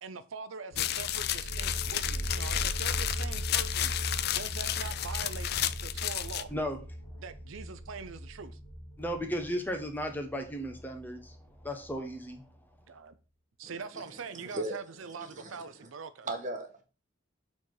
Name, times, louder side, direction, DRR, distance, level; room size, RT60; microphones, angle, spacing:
voice 1, 0.0-3.9 4.3-5.5 5.8-6.5 7.2-8.6 12.9-13.1 13.6-16.3, right 5 dB, 85° right, 0.6 m, -43 dB
sound 1, 0.7-12.1, equal, 70° left, 1.7 m, -39 dB
sound 2, 0.8-6.4, left 12 dB, 50° left, 0.4 m, -32 dB
voice 2, 6.5-6.8 9.0-12.5, equal, 10° left, 1.0 m, -35 dB
voice 3, 15.2-15.9 16.2-16.8, right 1 dB, 40° right, 1.4 m, -37 dB
6.7 x 4.1 x 4.8 m
head